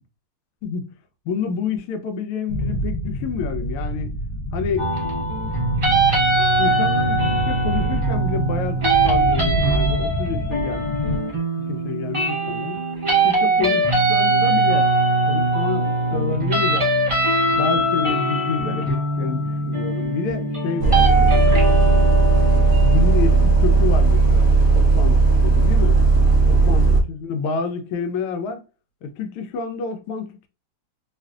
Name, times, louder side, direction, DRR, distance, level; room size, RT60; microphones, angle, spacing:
voice 1, 0.6-0.9 1.3-4.1 4.5-4.9 6.6-11.0 11.7-12.8 13.2-14.9 15.3-16.9 17.6-21.5 22.8-24.5 24.7-26.0 26.5-28.6 29.0-30.5, left 5 dB, 90° left, 1.5 m, -28 dB
sound 1, 2.5-11.2, equal, 65° left, 1.0 m, -27 dB
sound 2, 4.8-24.7, right 2 dB, 30° right, 0.6 m, -22 dB
Bus, 20.8-27.0, right 4 dB, 70° right, 0.8 m, -16 dB
3.4 x 2.4 x 2.2 m
omnidirectional pair, 2.3 m